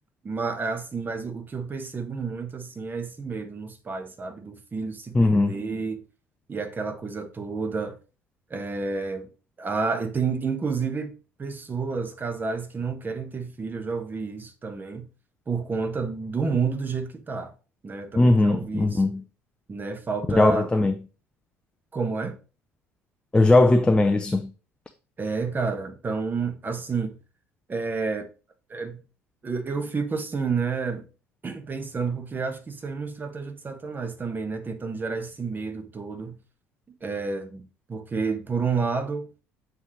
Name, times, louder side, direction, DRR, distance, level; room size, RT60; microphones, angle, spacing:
voice 1, 0.2-6.0 6.5-8.0 8.5-9.3 9.6-15.1 15.5-17.5 17.8-19.0 19.7-20.8 21.9-22.4 25.2-27.2 27.7-28.3 28.7-29.0 29.4-31.1 31.4-36.4 37.0-39.3, right 4 dB, 25° right, 1.2 m, -30 dB
voice 2, 5.1-5.6 18.2-19.2 20.4-20.9 23.3-24.5, left 2 dB, 10° left, 0.5 m, -19 dB
7.2 x 4.3 x 3.2 m
figure-of-eight pair, 60°, 8 cm